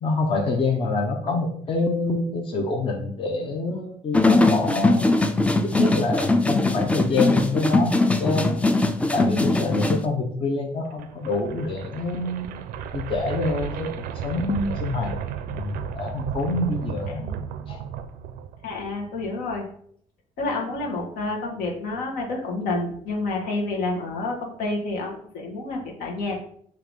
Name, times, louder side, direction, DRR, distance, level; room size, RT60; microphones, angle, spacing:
voice 1, 0.0-5.3 5.8-8.5 9.1-12.6 12.9-13.9 14.2-15.1 15.5-17.2 17.7-17.8, left 3 dB, 35° left, 2 dB, 0.7 m, -26 dB
sound 1, 4.1-10.0, left 2 dB, 10° left, 0.4 m, -21 dB
sound 2, 10.9-18.9, right 8 dB, 75° right, 0.4 m, -33 dB
voice 2, 18.6-19.7 20.4-26.4, left 2 dB, 80° left, 0 dB, 1.3 m, -29 dB
3.8 x 2.9 x 4.8 m, 0.63 s
cardioid pair, 105°, 15 cm